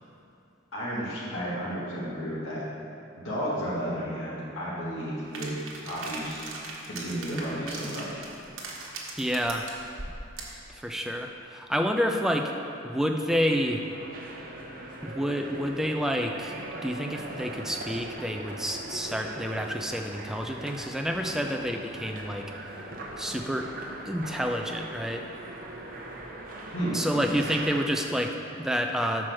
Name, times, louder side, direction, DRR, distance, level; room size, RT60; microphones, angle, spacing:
voice 1, 0.7-2.6 3.1-5.6 5.8-6.4 6.9-8.2 26.7-27.0 27.3-27.4, equal, 85° left, -7 dB, 1.7 m, -32 dB
sound 1, 5.3-10.6, right 3 dB, 85° right, 1.1 m, -39 dB
voice 2, 9.2-9.7 10.7-12.5 12.8-13.8 15.0-16.6 16.8-22.5 23.2-23.7 24.1-25.3 26.9-29.3, equal, ahead, 3 dB, 0.3 m, -29 dB
sound 2, 13.3-28.0, right 1 dB, 45° right, 0.8 m, -41 dB
6.0 x 4.6 x 6.1 m, 2.9 s
head